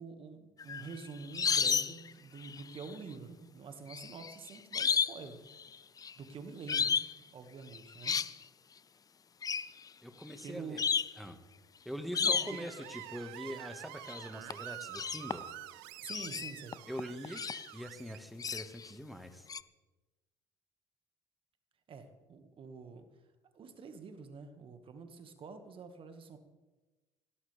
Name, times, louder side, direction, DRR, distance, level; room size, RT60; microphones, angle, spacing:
voice 1, 0.0-5.4 6.2-7.0 7.3-8.2 10.4-10.8 12.2-12.6 16.0-16.8 21.9-23.2 23.5-26.4, right 5 dB, 45° right, 7 dB, 1.9 m, -47 dB
sound 1, 0.6-2.1 2.4-2.9 3.9-5.2 5.5-6.1 6.7-7.1 7.7-8.3 9.4-9.7 10.3-10.4 10.8-11.2 12.1-12.7 14.1-14.2 14.5-15.6 16.0-17.7 18.4-18.9 19.5-19.6, left 6 dB, 30° left, 0.6 m, -32 dB
voice 2, 10.0-10.8 11.2-11.4 11.8-15.4 16.9-17.4 17.7-19.5, equal, ahead, 8 dB, 1.7 m, -43 dB
Screech, 12.1-18.2, right 20 dB, 75° right, 0.4 m, -48 dB
18.0 x 17.0 x 3.5 m, 1.2 s
hypercardioid pair, 60°, 13 cm